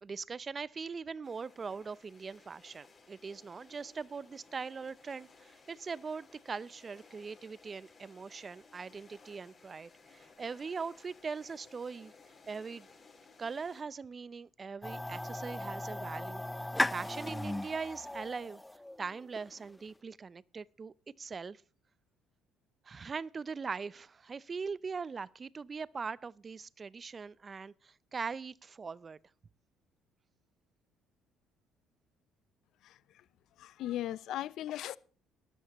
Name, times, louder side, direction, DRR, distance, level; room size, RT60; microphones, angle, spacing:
voice 1, 0.0-12.1 12.5-12.9 13.4-18.6 19.0-21.6 22.9-29.2, right 5 dB, 35° right, 0.6 m, -41 dB
sound 1, 1.2-13.8, left 4 dB, 30° left, 5.5 m, -60 dB
sound 2, 14.8-19.8, left 1 dB, 10° left, 0.5 m, -37 dB
voice 2, 33.6-35.0, left 13 dB, 70° left, 0.6 m, -37 dB
18.0 x 12.5 x 3.0 m
supercardioid pair, 75°, 0 cm